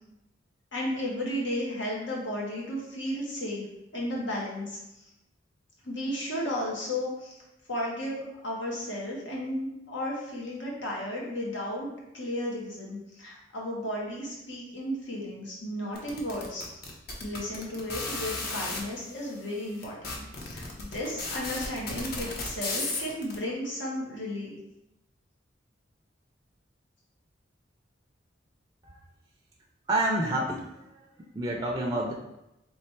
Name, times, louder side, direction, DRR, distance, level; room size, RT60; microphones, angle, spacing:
voice 1, 0.7-3.7 3.9-4.8 5.8-7.4 7.7-16.8 17.2-24.6, left 1 dB, 85° left, -3 dB, 1.3 m, -34 dB
sound 1, 16.0-18.8 19.5-19.6 19.8-23.3, left 3 dB, 55° left, 0.8 m, -34 dB
voice 2, 29.9-31.1 31.3-32.1, right 1 dB, 20° right, -1 dB, 0.4 m, -28 dB
3.3 x 3.1 x 4.4 m, 0.89 s
head